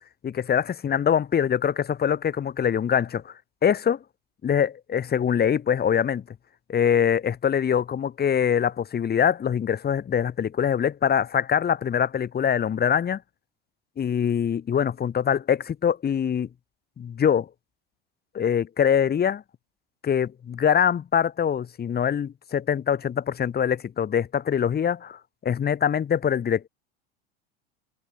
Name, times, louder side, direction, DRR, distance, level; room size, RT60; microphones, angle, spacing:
voice 1, 0.2-3.3 3.6-4.0 4.4-6.2 6.7-13.2 14.0-16.5 17.0-17.5 18.3-19.4 20.0-26.7, left 8 dB, 30° left, 3.4 m, -23 dB
hypercardioid pair, 85°, 31 cm